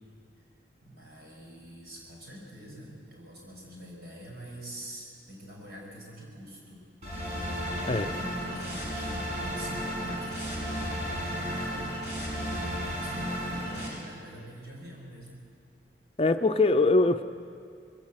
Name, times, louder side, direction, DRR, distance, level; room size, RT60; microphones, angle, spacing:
voice 1, 0.8-6.8 7.4-11.8 12.2-15.4, equal, 60° right, -2 dB, 6.1 m, -45 dB
sound 1, 7.0-13.9, equal, 40° right, 5.1 m, -33 dB
voice 2, 16.2-17.2, left 3 dB, 35° left, 8 dB, 0.6 m, -22 dB
21.5 x 16.5 x 7.7 m, 2.4 s
head